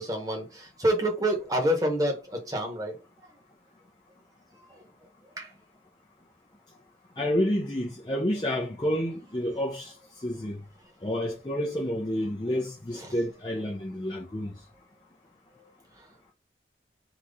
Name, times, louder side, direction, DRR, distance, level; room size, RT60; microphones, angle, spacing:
voice 1, 0.0-2.9 5.4-5.5, equal, 20° right, 1.1 m, -27 dB
voice 2, 7.2-10.6 11.0-14.5, equal, 25° left, 0.6 m, -29 dB
3.9 x 3.0 x 3.6 m
head